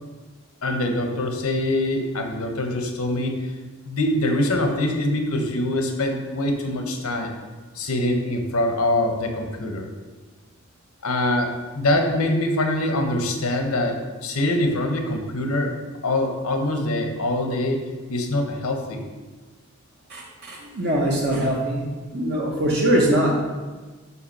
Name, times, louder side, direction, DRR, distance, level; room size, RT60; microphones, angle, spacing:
voice 1, 0.6-3.3 3.8-7.3 7.7-9.9 11.0-15.7 16.0-19.0, left 1 dB, 75° left, 4 dB, 1.0 m, -24 dB
voice 2, 20.1-21.8 22.1-23.4, right 1 dB, 50° right, -3 dB, 0.8 m, -22 dB
5.7 x 4.7 x 5.5 m, 1.3 s
head